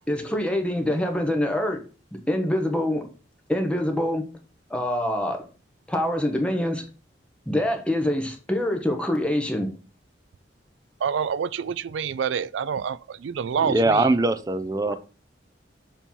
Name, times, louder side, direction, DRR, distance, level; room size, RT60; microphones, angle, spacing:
voice 1, 0.1-1.8 2.1-3.0 3.5-4.2 4.7-5.4 5.9-6.8 7.5-9.7 14.9-15.0, left 1 dB, 5° left, 0.8 m, -25 dB
voice 2, 11.0-14.1, right 7 dB, 85° right, 0.4 m, -27 dB
voice 3, 13.6-15.0, right 2 dB, 20° right, 0.4 m, -22 dB
7.0 x 2.9 x 5.4 m
head